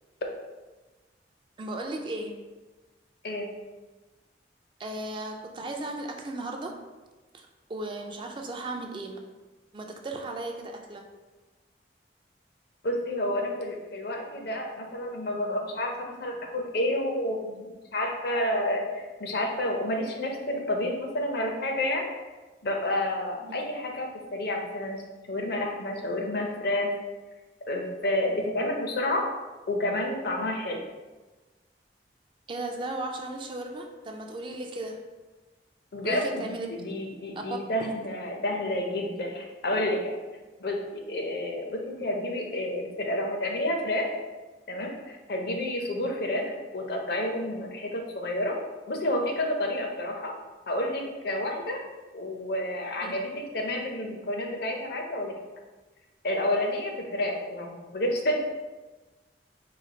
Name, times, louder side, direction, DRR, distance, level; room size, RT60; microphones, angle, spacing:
voice 1, 1.6-2.4 4.8-6.8 7.3-9.2 9.7-11.0 23.4-23.6 32.5-35.0 36.0-36.7 37.4-37.8 53.0-53.2, right 2 dB, 30° right, 3 dB, 0.3 m, -36 dB
voice 2, 12.8-15.9 16.2-22.1 22.6-25.0 25.3-26.9 27.7-29.3 29.7-30.8 35.9-40.2 40.6-44.1 44.7-48.6 48.9-50.3 50.7-51.8 52.1-55.3 56.2-58.4, left 1 dB, 60° left, 2 dB, 0.5 m, -30 dB
3.1 x 2.4 x 3.9 m, 1.2 s
head